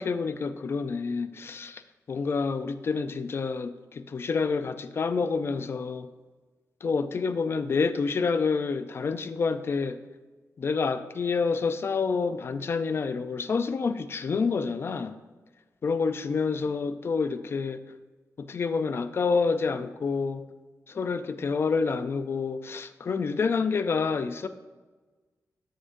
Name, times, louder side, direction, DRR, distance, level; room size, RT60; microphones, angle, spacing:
voice 1, 0.0-1.8 2.1-6.1 6.8-10.0 10.6-15.2 15.8-17.8 18.4-20.4 20.9-24.5, left 5 dB, 45° left, 0.5 m, -28 dB
13.0 x 10.0 x 2.6 m
wide cardioid pair, 175°, 6 cm